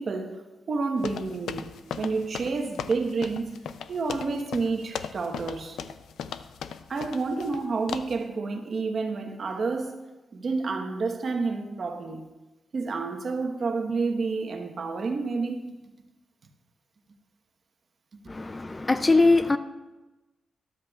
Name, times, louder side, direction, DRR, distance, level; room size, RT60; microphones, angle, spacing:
voice 1, 0.0-3.6 3.9-5.8 6.9-9.9 10.3-12.3 12.7-15.7, right 4 dB, 50° right, 1.1 m, -29 dB
sound 1, 1.0-7.6 7.9-8.2, left 8 dB, 90° left, 0.4 m, -38 dB
voice 2, 18.3-19.6, left 3 dB, 20° left, 0.4 m, -21 dB
13.0 x 12.0 x 2.4 m
cardioid pair, 110°, 0 cm